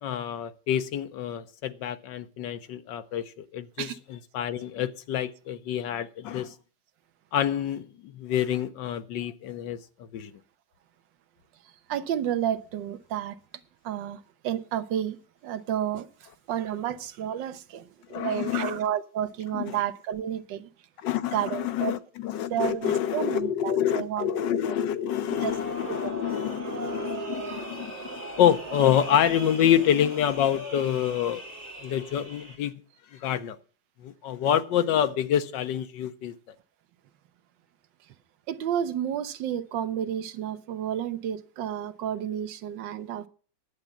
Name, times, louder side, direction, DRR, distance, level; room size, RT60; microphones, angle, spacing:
voice 1, 0.0-6.5 7.3-10.3 18.1-18.8 19.5-19.8 21.0-31.4 31.8-32.7 33.1-33.6 34.0-36.3, left 10 dB, 85° left, 1.5 m, -27 dB
voice 2, 11.9-13.4 13.8-15.2 15.4-16.1 16.5-20.7 21.3-22.0 22.5-24.3 24.6-24.8 25.4-25.5 25.9-26.1 38.5-43.3, right 10 dB, 85° right, 1.5 m, -31 dB
sound 1, 25.3-32.6, right 2 dB, 25° right, 3.3 m, -38 dB
10.5 x 8.0 x 7.2 m
omnidirectional pair, 1.9 m